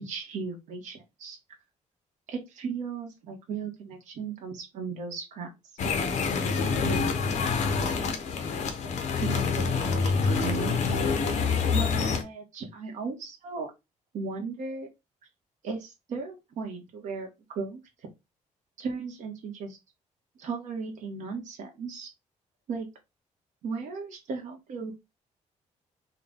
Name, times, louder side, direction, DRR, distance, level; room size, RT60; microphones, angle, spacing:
voice 1, 0.0-1.4 2.3-5.5 6.8-7.2 9.2-9.5 9.7-11.1 11.7-13.7 14.1-14.9 15.6-17.8 18.8-19.8 20.4-22.1 22.7-22.9 23.6-24.9, right 4 dB, 70° right, 2 dB, 1.0 m, -36 dB
sound 1, 5.8-12.2, left 5 dB, 60° left, 0.7 m, -26 dB
3.8 x 2.2 x 3.5 m, 0.22 s
cardioid pair, 180°, 13 cm